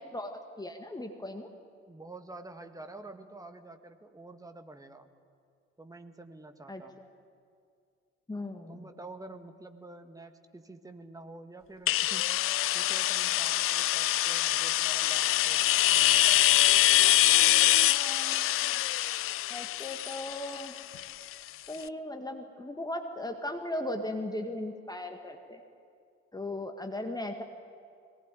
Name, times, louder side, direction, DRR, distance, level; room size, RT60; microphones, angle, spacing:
voice 1, 0.1-1.5 6.7-7.1 8.3-8.9 17.8-18.8 19.5-20.7 21.7-25.6 26.3-27.4, left 1 dB, 10° left, 4 dB, 1.9 m, -38 dB
voice 2, 1.9-5.1 5.8-7.0 8.7-12.4 12.7-15.7 15.9-16.4, right 2 dB, 10° right, 7 dB, 1.8 m, -48 dB
sound 1, 11.9-21.5, left 15 dB, 40° left, 0.5 m, -25 dB
22.0 x 18.5 x 9.1 m, 2.3 s
figure-of-eight pair, 50°, 33 cm